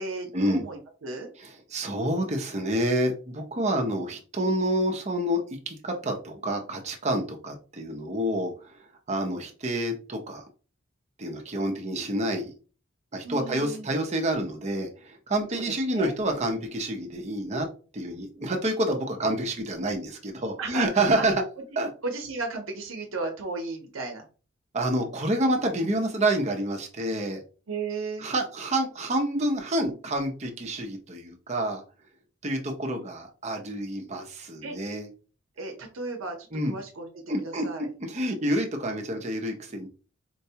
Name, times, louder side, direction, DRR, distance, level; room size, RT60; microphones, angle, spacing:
voice 1, 0.0-1.3 13.2-14.0 15.5-16.1 20.6-20.8 21.2-21.3 22.0-24.2 27.7-28.3 34.6-34.7 35.6-37.9, right 3 dB, 85° right, 2 dB, 0.7 m, -35 dB
voice 2, 1.4-5.4 5.7-8.7 9.1-10.4 11.2-12.5 13.1-17.7 17.9-21.3 21.8-21.9 24.7-27.4 28.2-31.8 32.4-35.1 36.5-36.8 37.3-39.9, right 1 dB, 35° right, 3 dB, 0.7 m, -28 dB
4.5 x 2.2 x 2.8 m, 0.36 s
head